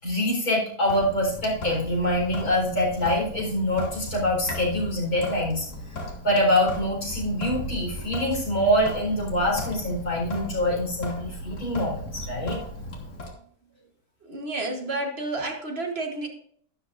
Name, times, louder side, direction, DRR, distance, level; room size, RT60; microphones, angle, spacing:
voice 1, 0.0-5.7 6.2-12.6, left 1 dB, 75° left, -2 dB, 4.8 m, -25 dB
Sink (filling or washing) / Drip, 0.9-13.3, left 1 dB, 55° left, 2.2 m, -36 dB
voice 2, 14.2-16.3, right 2 dB, 45° right, 3 dB, 1.4 m, -30 dB
12.0 x 11.5 x 2.5 m, 0.63 s
omnidirectional pair, 1.6 m